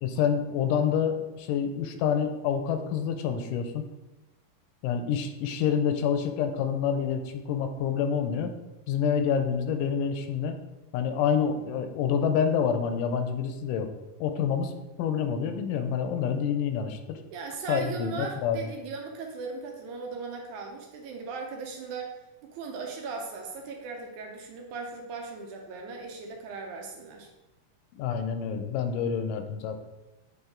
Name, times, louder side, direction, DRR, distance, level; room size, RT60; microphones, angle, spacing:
voice 1, 0.0-3.8 4.8-8.5 8.9-10.5 10.9-13.9 14.2-14.7 15.0-17.2 17.7-18.6 27.9-29.8, left 7 dB, 85° left, 7 dB, 2.1 m, -27 dB
voice 2, 17.3-22.2 22.5-27.3, right 4 dB, 75° right, 2 dB, 2.0 m, -38 dB
7.0 x 3.7 x 3.8 m, 1.0 s
omnidirectional pair, 3.8 m